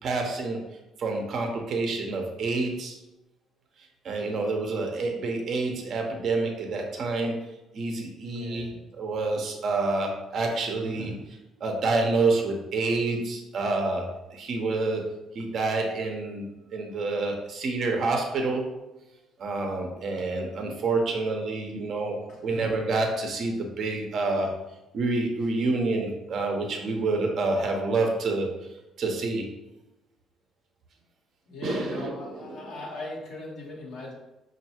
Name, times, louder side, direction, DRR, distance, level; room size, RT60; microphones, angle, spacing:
voice 1, 0.0-0.6 1.0-3.0 4.0-7.4 7.7-15.0 15.3-18.6 19.4-22.2 22.4-24.5 24.9-28.5 29.0-29.5 31.6-32.7, right 3 dB, 60° right, 2 dB, 0.8 m, -28 dB
voice 2, 8.0-8.8 22.3-22.4 31.5-34.1, left 2 dB, 85° left, -5 dB, 1.1 m, -39 dB
5.3 x 2.6 x 2.9 m, 0.96 s
supercardioid pair, 80°, 0 cm